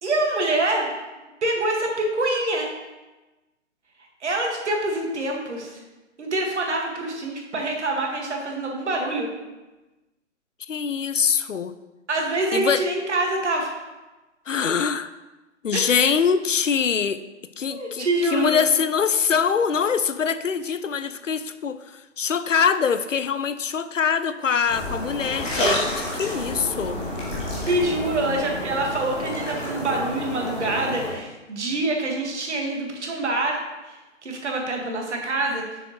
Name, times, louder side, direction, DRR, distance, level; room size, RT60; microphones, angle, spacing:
voice 1, 0.0-0.9 1.4-2.7 4.2-5.8 6.2-9.3 12.1-13.7 15.7-16.1 17.7-18.6 27.6-33.6 33.9-35.6, right 2 dB, 65° right, 1 dB, 1.7 m, -25 dB
voice 2, 10.7-11.7 12.5-12.9 14.5-15.1 15.6-17.2 17.6-27.0, left 6 dB, 90° left, 13 dB, 0.5 m, -23 dB
sound 1, 24.7-31.1, equal, 5° left, 0.4 m, -29 dB
6.5 x 6.4 x 3.0 m, 1.1 s
figure-of-eight pair, 130°, 37 cm